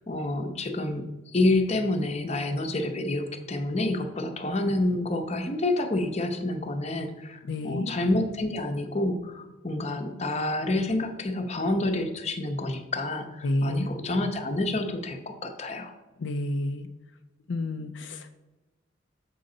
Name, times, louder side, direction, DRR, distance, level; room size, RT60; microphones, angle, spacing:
voice 1, 0.1-7.4 7.6-15.9, left 2 dB, 35° left, 5 dB, 0.7 m, -28 dB
voice 2, 7.4-7.9 13.4-13.9 16.2-16.9 17.5-18.3, left 1 dB, 70° left, 7 dB, 0.4 m, -29 dB
7.6 x 5.3 x 3.8 m, 1.1 s
head